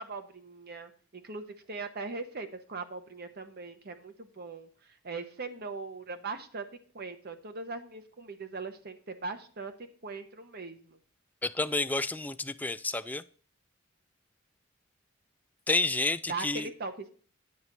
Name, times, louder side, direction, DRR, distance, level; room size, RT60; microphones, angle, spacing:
voice 1, 0.0-4.7 5.0-6.7 6.9-9.7 10.0-11.0 16.3-17.1, right 3 dB, 50° right, 8 dB, 1.0 m, -40 dB
voice 2, 11.4-13.2 15.7-16.7, left 2 dB, 10° left, 12 dB, 0.3 m, -30 dB
9.5 x 4.0 x 7.4 m, 0.44 s
head